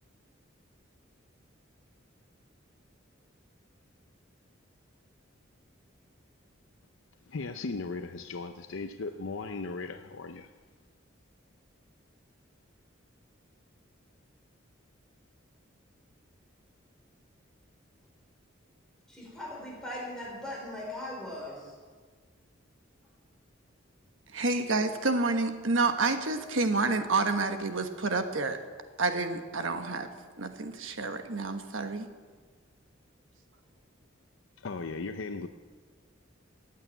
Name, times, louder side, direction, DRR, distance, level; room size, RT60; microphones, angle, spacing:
voice 1, 7.3-10.5 34.6-35.5, left 3 dB, 75° left, 7 dB, 0.6 m, -37 dB
voice 2, 19.1-21.6, left 1 dB, 5° left, -4 dB, 4.8 m, -39 dB
voice 3, 24.3-28.6 29.0-30.1 30.4-32.1, right 3 dB, 75° right, 7 dB, 1.2 m, -29 dB
15.0 x 9.2 x 9.0 m, 1.5 s
head